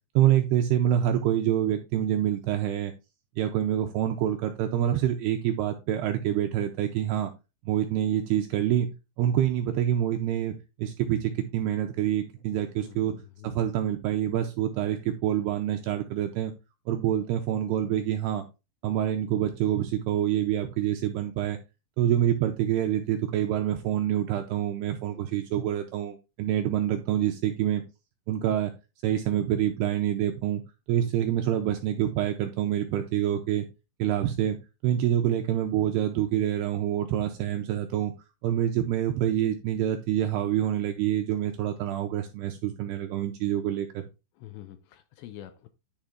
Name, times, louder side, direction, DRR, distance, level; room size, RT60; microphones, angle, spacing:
voice 1, 0.2-2.9 3.4-7.3 7.7-8.9 9.2-13.2 13.4-16.5 16.9-18.4 18.8-21.6 22.0-27.8 28.3-28.7 29.0-30.6 30.9-33.7 34.0-34.6 34.8-38.1 38.4-44.0, right 11 dB, 80° right, 2.4 m, -26 dB
voice 2, 12.8-13.6 25.1-25.3 31.0-31.1 44.4-45.7, left 13 dB, 80° left, 2.6 m, -46 dB
10.5 x 4.9 x 3.5 m
omnidirectional pair, 5.4 m